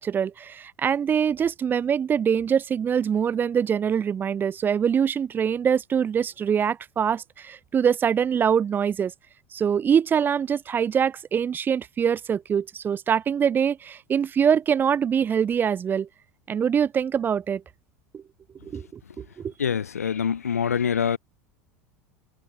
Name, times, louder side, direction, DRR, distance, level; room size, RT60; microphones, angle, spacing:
voice 1, 0.0-9.1 9.5-16.1 16.5-17.6 18.1-18.2 18.7-18.9 19.2-19.5, right 7 dB, 25° right, 0.4 m, -24 dB
voice 2, 19.6-21.2, left 7 dB, 90° left, 0.4 m, -25 dB
hypercardioid pair, 80°, 8 cm